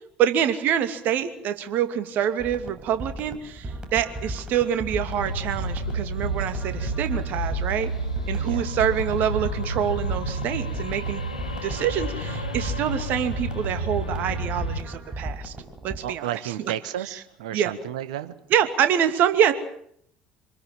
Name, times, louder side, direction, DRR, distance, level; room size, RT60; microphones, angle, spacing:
voice 1, 0.2-7.9 8.3-11.3 11.6-15.5 15.8-16.7 17.1-17.2 17.5-17.7 18.5-19.5, right 9 dB, 50° right, 9 dB, 2.6 m, -26 dB
sound 1, 2.4-16.0, right 1 dB, 25° right, 6.6 m, -36 dB
sound 2, 5.0-14.8, right 2 dB, 85° left, 2.2 m, -30 dB
voice 2, 16.0-18.3, right 11 dB, 70° right, 13 dB, 1.5 m, -32 dB
27.0 x 21.0 x 7.5 m, 0.68 s
figure-of-eight pair, 60°, 4 cm